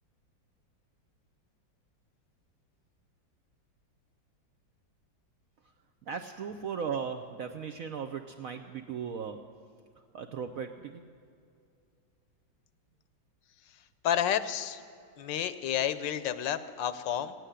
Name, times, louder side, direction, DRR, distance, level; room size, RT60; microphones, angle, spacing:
voice 1, 6.1-9.5 10.1-11.0, right 6 dB, 65° right, 7 dB, 0.8 m, -37 dB
voice 2, 14.0-14.8 15.2-17.3, left 10 dB, 75° left, 13 dB, 1.3 m, -30 dB
15.0 x 9.2 x 9.9 m, 2.4 s
omnidirectional pair, 2.1 m